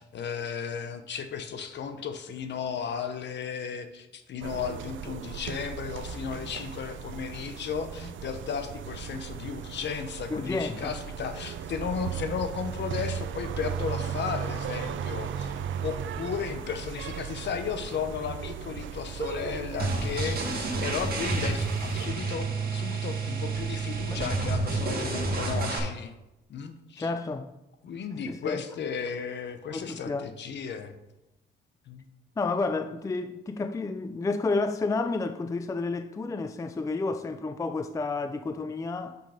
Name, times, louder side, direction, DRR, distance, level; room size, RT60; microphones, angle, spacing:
voice 1, 0.0-26.1 26.5-27.1 27.8-30.9 31.9-32.0, left 6 dB, 60° left, 0.9 m, -35 dB
sound 1, 4.4-22.1, right 8 dB, 70° right, 0.6 m, -36 dB
voice 2, 10.3-11.0 24.1-24.3 27.0-27.5 28.2-28.6 29.7-30.3 32.4-39.2, left 3 dB, 15° left, 0.4 m, -31 dB
sound 2, 19.8-25.8, right 3 dB, 50° right, 1.9 m, -29 dB
6.3 x 5.6 x 5.0 m
cardioid pair, 100°, 21 cm